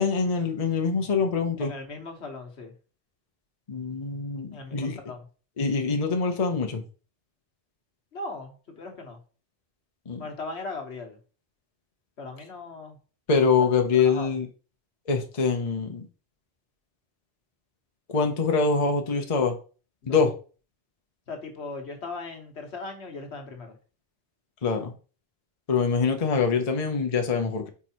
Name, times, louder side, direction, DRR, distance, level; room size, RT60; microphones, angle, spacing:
voice 1, 0.0-1.7 3.7-5.0 5.6-6.8 10.1-10.3 13.3-14.5 15.1-16.1 18.1-19.5 20.1-20.3 24.6-24.9 25.7-27.7, left 5 dB, 35° left, 4 dB, 0.8 m, -24 dB
voice 2, 1.6-2.7 4.5-5.2 8.1-9.2 10.2-11.2 12.2-13.0 13.6-14.3 20.0-20.2 21.3-23.7, left 3 dB, 65° left, 4 dB, 1.4 m, -38 dB
4.8 x 4.7 x 4.4 m, 0.37 s
omnidirectional pair, 1.2 m